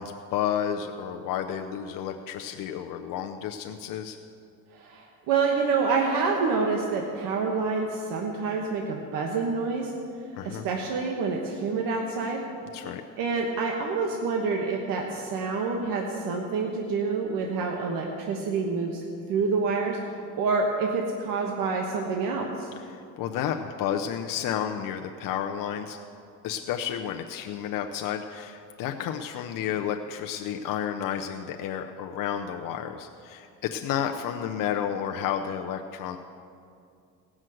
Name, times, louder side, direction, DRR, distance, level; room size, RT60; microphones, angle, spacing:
voice 1, 0.0-4.2 10.4-10.6 12.7-13.0 22.8-26.0 26.4-36.2, left 9 dB, 70° left, 4 dB, 0.7 m, -31 dB
voice 2, 4.7-9.9 10.4-12.4 13.2-19.0 19.3-20.0 20.4-22.7, right 4 dB, 75° right, 1 dB, 1.4 m, -27 dB
17.5 x 6.3 x 7.7 m, 2.4 s
cardioid pair, 125°, 33 cm